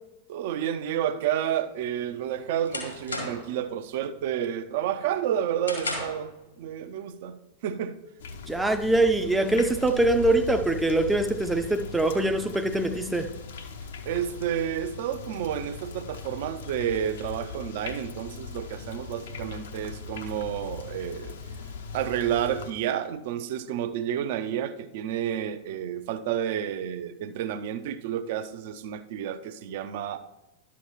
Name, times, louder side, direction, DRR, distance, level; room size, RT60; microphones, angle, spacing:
voice 1, 0.3-8.0 14.1-21.3 21.9-30.2, right 10 dB, 50° right, 0.6 m, -30 dB
sound 1, 1.8-3.6 4.0-4.4 4.8-6.3, left 2 dB, 85° left, 2.2 m, -35 dB
sound 2, 8.2-22.7, left 4 dB, 60° left, 0.7 m, -39 dB
voice 2, 8.5-13.3, right 2 dB, 5° right, 0.5 m, -23 dB
11.5 x 7.1 x 3.1 m
figure-of-eight pair, 90°, 0 cm